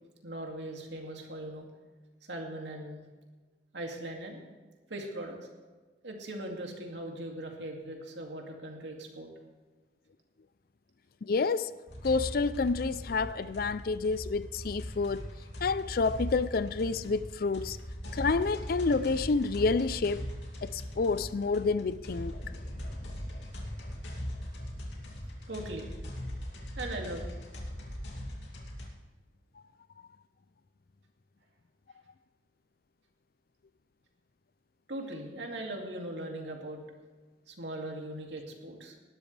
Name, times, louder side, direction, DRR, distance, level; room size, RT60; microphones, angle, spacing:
voice 1, 0.2-1.7 2.3-3.0 3.7-4.4 4.9-5.4 6.0-9.3 25.5-25.9 26.8-27.3 34.9-36.8 37.5-38.9, right 1 dB, 85° right, 2.4 m, -39 dB
voice 2, 11.3-11.7 12.0-15.3 15.6-17.8 18.1-20.2 20.6-22.3, left 4 dB, 55° left, 0.4 m, -29 dB
sound 1, 11.9-28.9, equal, 80° left, 2.7 m, -40 dB
19.0 x 12.5 x 3.4 m
head